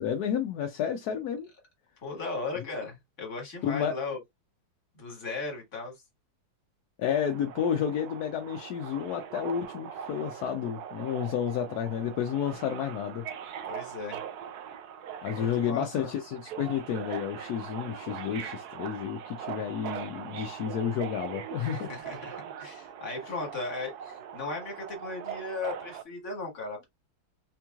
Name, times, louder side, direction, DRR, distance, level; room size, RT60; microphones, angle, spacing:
voice 1, 0.0-1.5 3.6-4.0 7.0-13.2 15.2-21.9, left 8 dB, 70° left, 1.0 m, -31 dB
voice 2, 2.0-4.2 5.0-5.9 13.7-14.2 15.4-16.1 21.6-26.8, left 3 dB, 40° left, 1.8 m, -37 dB
Subway metro underground, 7.1-26.0, right 9 dB, 70° right, 1.0 m, -41 dB
4.4 x 2.9 x 2.3 m
omnidirectional pair, 2.1 m